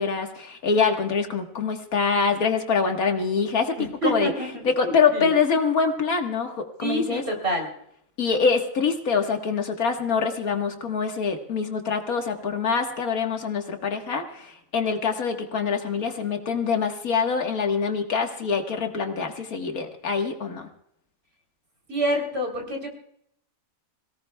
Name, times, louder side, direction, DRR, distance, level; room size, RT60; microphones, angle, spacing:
voice 1, 0.0-3.8 4.0-4.3 4.6-7.2 8.2-20.7, left 5 dB, 85° left, 4 dB, 2.0 m, -25 dB
voice 2, 3.8-5.4 6.8-7.7 21.9-22.9, equal, 45° right, 1 dB, 3.9 m, -27 dB
26.5 x 17.5 x 2.3 m, 0.72 s
omnidirectional pair, 1.5 m